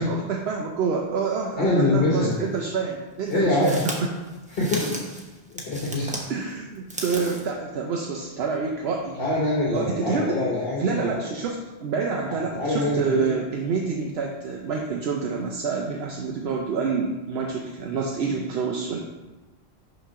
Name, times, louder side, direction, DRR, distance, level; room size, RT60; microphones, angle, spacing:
voice 1, 0.0-3.9 6.3-9.3 9.7-10.4 10.8-19.0, right 5 dB, 70° right, 0 dB, 0.8 m, -27 dB
voice 2, 1.6-2.3 3.3-3.7 4.5-4.9 5.5-6.1 9.2-11.1 12.5-13.2, left 2 dB, 60° left, -5 dB, 1.3 m, -24 dB
sound 1, 2.3-2.4 3.3-6.3 6.7-7.5, equal, 10° right, 0.6 m, -35 dB
5.8 x 3.1 x 5.5 m, 1.2 s
omnidirectional pair, 1.1 m